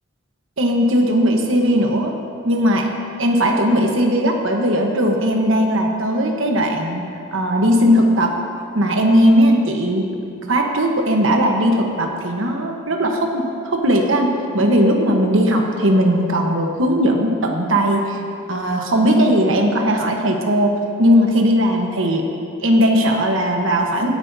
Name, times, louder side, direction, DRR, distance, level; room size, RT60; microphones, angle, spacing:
voice 1, 0.6-2.1 2.4-2.9 3.2-8.3 8.7-10.1 10.5-18.2 18.5-20.7 21.0-22.2 22.6-24.1, equal, 70° right, 1 dB, 1.2 m, -18 dB
17.5 x 9.9 x 2.8 m, 2.4 s
head